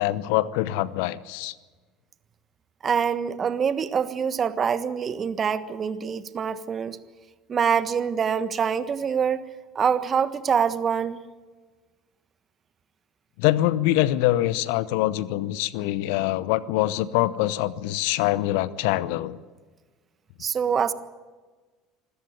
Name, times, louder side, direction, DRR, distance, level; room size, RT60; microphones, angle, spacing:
voice 1, 0.0-1.5 13.4-19.4, left 15 dB, 65° left, 18 dB, 0.8 m, -24 dB
voice 2, 2.8-7.0 7.5-9.4 9.7-11.2 20.4-20.9, right 7 dB, 35° right, 12 dB, 1.4 m, -25 dB
26.0 x 13.5 x 9.3 m, 1.3 s
hypercardioid pair, 70°, 0 cm